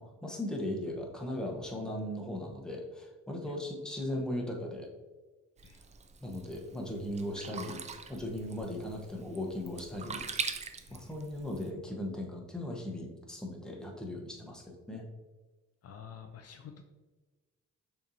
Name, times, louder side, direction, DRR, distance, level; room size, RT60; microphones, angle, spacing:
voice 1, 0.0-4.9 6.2-10.2 10.9-15.1, left 1 dB, ahead, 0 dB, 0.9 m, -38 dB
Sink (filling or washing), 5.6-11.7, right 5 dB, 25° right, 0.4 m, -42 dB
voice 2, 15.8-16.8, left 8 dB, 55° left, 6 dB, 0.5 m, -49 dB
6.6 x 2.9 x 2.7 m, 1.3 s
cardioid pair, 90°, 30 cm